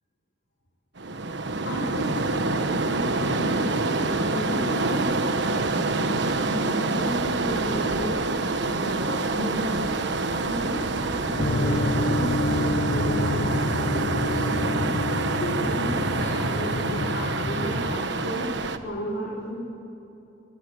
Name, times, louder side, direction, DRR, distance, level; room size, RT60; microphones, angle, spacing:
sound 1, 1.0-18.8, right 3 dB, 65° right, 1.3 m, -27 dB
voice 1, 1.6-18.4 18.8-19.5, equal, 65° left, -5 dB, 4.9 m, -34 dB
sound 2, 11.3-18.0, left 2 dB, 45° left, 1.1 m, -28 dB
23.5 x 21.0 x 8.1 m, 2.9 s
head